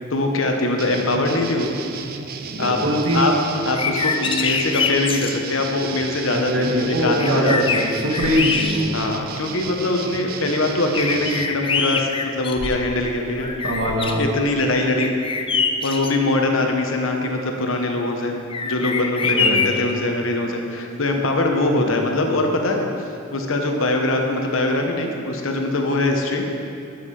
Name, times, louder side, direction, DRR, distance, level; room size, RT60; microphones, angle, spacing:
voice 1, 0.1-1.7 2.6-2.8 3.1-3.3 3.6-7.8 8.9-13.5 14.2-15.1 15.8-18.4 18.6-26.4, left 2 dB, 70° left, 2 dB, 1.1 m, -22 dB
sound 1, 0.8-11.5, right 6 dB, 45° right, 0.5 m, -34 dB
voice 2, 2.5-3.3 6.3-8.9 13.6-14.2 19.2-19.7 21.8-22.0, equal, 70° right, -1 dB, 1.6 m, -22 dB
sound 2, 3.6-5.4 6.7-6.8 7.2-9.1 9.7-9.8 10.9-13.0 13.4-14.2 15.0-16.1 18.5-19.9, left 5 dB, 25° left, 0.4 m, -24 dB
10.0 x 7.8 x 4.9 m, 2.6 s
head